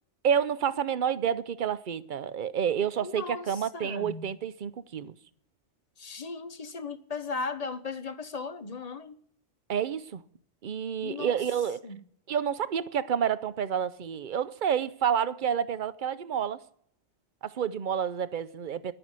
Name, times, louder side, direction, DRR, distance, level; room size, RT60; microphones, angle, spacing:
voice 1, 0.2-5.2 9.7-10.2 10.6-11.9 12.3-16.6 17.4-18.9, right 8 dB, 50° right, 0.7 m, -29 dB
voice 2, 3.0-4.4 6.0-9.2 11.0-11.4 11.8-12.0, left 4 dB, 35° left, 0.8 m, -37 dB
11.0 x 9.5 x 7.4 m
omnidirectional pair, 1.2 m